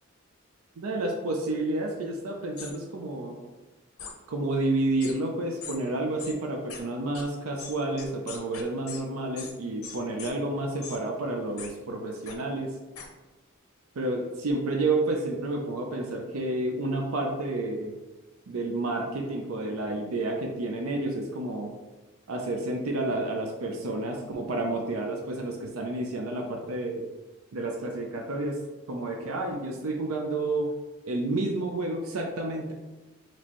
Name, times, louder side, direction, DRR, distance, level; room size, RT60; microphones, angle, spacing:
voice 1, 0.8-3.4 4.3-12.7 14.0-17.9 18.5-21.7 22.3-27.0 27.5-28.6 28.9-30.7 31.1-32.7, right 2 dB, 80° right, 2 dB, 0.5 m, -30 dB
sound 1, 2.6-2.7 4.0-4.1 5.0-5.1 5.6-5.8 6.2-6.3 6.7-6.8 7.1-7.2 7.6-9.0 9.4-9.5 9.8-10.3 10.8-11.0 11.6-11.7 12.3-12.4 12.9-13.1, left 6 dB, 80° left, 0.7 m, -40 dB
4.3 x 3.0 x 2.9 m, 1.1 s
head